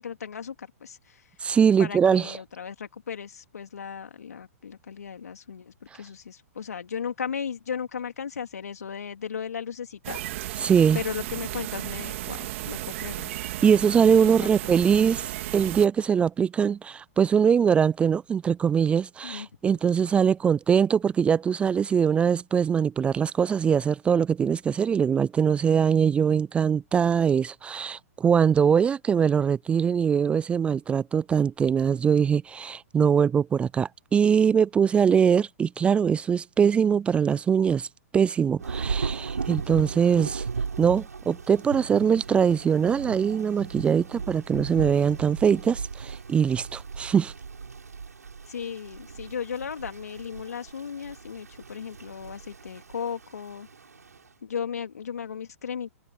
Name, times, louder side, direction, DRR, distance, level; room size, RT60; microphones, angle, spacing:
voice 1, 0.0-1.2 1.8-10.4 10.9-13.3 14.3-14.4 14.6-14.8 19.2-19.5 48.5-53.7 54.4-55.9, left 7 dB, 80° left, 2.9 m, -36 dB
voice 2, 1.4-2.4 10.6-11.0 13.6-37.9 38.1-40.5 40.8-47.3, right 7 dB, 15° right, 0.4 m, -22 dB
sound 1, 10.0-15.9, right 16 dB, 50° right, 3.1 m, -34 dB
Thunder / Rain, 38.6-54.2, right 5 dB, 85° right, 7.5 m, -36 dB
hypercardioid pair, 125°, 8 cm